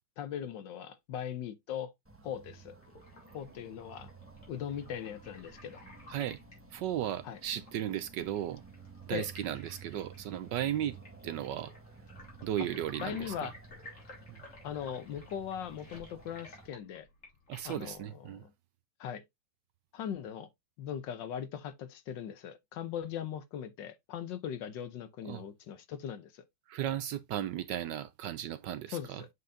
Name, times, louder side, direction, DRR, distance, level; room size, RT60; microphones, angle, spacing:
voice 1, 0.2-1.9 2.2-2.7 3.3-4.1 4.5-5.9 7.2-7.4 9.1-9.3 13.0-13.5 14.6-17.1 17.6-18.5 19.0-19.2 19.9-20.5 20.8-26.4 28.9-29.3, left 9 dB, 65° left, 1.3 m, -39 dB
sound 1, 2.0-16.7, right 5 dB, 20° right, 0.4 m, -53 dB
sound 2, 2.8-18.1, left 2 dB, 35° left, 3.6 m, -54 dB
voice 2, 6.1-6.4 6.7-8.6 9.1-11.0 11.2-11.7 12.4-13.5 14.3-14.4 17.5-18.4 25.2-25.4 26.7-29.2, right 11 dB, 75° right, 1.0 m, -35 dB
7.7 x 5.6 x 2.6 m
omnidirectional pair, 2.4 m